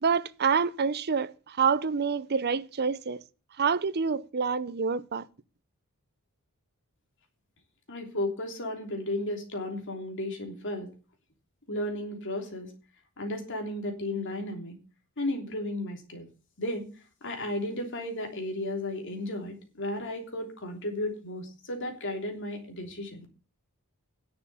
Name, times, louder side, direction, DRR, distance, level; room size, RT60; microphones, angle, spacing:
voice 1, 0.0-3.2 3.6-5.3, right 5 dB, 45° right, 0.6 m, -27 dB
voice 2, 7.9-10.9 11.7-12.7 13.2-14.8 15.2-16.3 16.6-16.9 17.2-23.2, left 1 dB, 55° left, 3.2 m, -34 dB
10.5 x 7.2 x 7.0 m
head